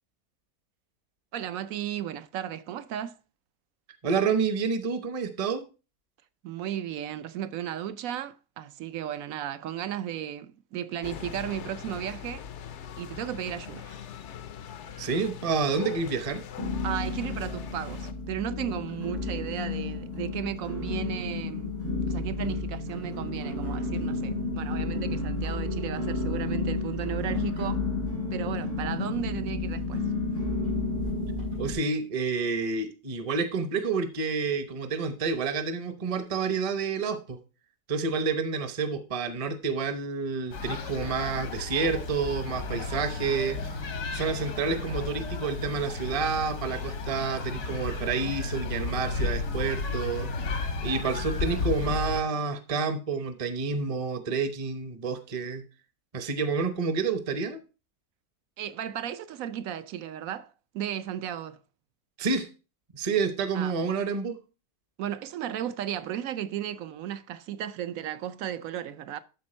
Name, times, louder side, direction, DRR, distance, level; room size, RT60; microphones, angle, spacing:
voice 1, 1.3-3.2 6.4-12.4 13.0-13.9 16.8-21.8 22.1-27.9 28.3-30.0 58.6-61.6 63.5-63.7 65.0-69.2, right 10 dB, 70° right, 1.0 m, -35 dB
voice 2, 4.0-5.6 15.0-16.4 31.6-37.4 37.9-43.6 44.1-50.3 50.8-55.6 56.1-57.6 62.2-62.5 62.9-64.4, right 5 dB, 30° right, 0.7 m, -29 dB
sound 1, 11.0-18.1, left 9 dB, 60° left, 0.8 m, -42 dB
sound 2, 13.4-14.4 14.6-15.3 15.8-15.9 16.6-31.8, left 3 dB, 85° right, 6.4 m, -31 dB
sound 3, 40.5-52.2, left 4 dB, 75° left, 1.7 m, -33 dB
12.5 x 4.4 x 4.3 m
omnidirectional pair, 1.7 m